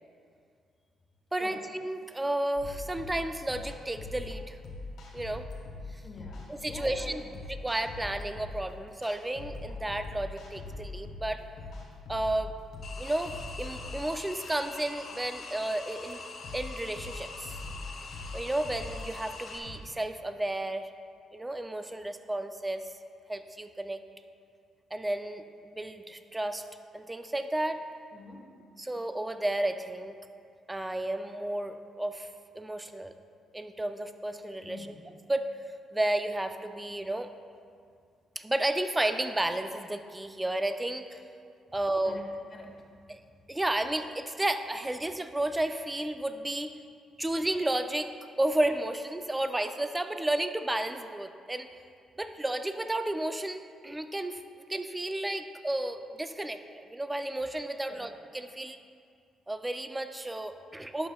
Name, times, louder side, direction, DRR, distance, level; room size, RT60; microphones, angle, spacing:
voice 1, 1.3-4.6 5.1-5.4 5.9-6.0 6.5-7.2 7.5-11.4 12.1-12.5 13.0-16.2 16.5-17.5 18.3-20.9 21.3-22.9 23.3-24.0 24.9-26.6 26.9-27.8 28.8-30.1 30.7-32.3 32.5-33.1 33.5-34.9 35.3-35.5 35.9-37.3 38.4-41.2 41.7-42.2 43.1-43.2 43.5-46.7 47.2-48.1 48.4-51.7 52.2-54.4 54.7-58.8 59.5-61.1, right 1 dB, 15° right, 8 dB, 0.4 m, -32 dB
sound 1, 2.6-19.8, left 3 dB, 75° left, 1.5 m, -42 dB
voice 2, 6.0-7.3 28.1-28.6 34.6-35.0 42.0-42.9 57.9-58.1, left 2 dB, 35° left, 1 dB, 1.2 m, -46 dB
sound 2, 12.8-19.6, left 3 dB, 55° left, 0.8 m, -44 dB
11.0 x 6.8 x 2.3 m, 2.3 s
cardioid pair, 90°, 0 cm